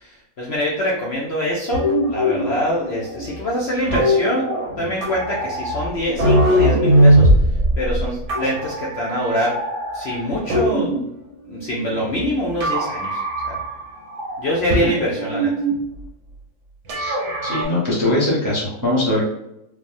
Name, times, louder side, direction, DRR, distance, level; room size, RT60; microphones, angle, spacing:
voice 1, 0.0-4.5 4.8-9.6 9.9-10.9 11.4-13.6 14.4-15.5, equal, 60° left, -5 dB, 0.7 m, -24 dB
sound 1, 1.7-11.1 11.5-12.3 12.6-13.8 14.1-15.8 16.9-17.6, equal, 60° right, 0.9 m, -20 dB
voice 2, 17.4-19.2, left 1 dB, 25° right, -7 dB, 0.4 m, -21 dB
3.2 x 2.1 x 2.5 m, 0.85 s
omnidirectional pair, 1.6 m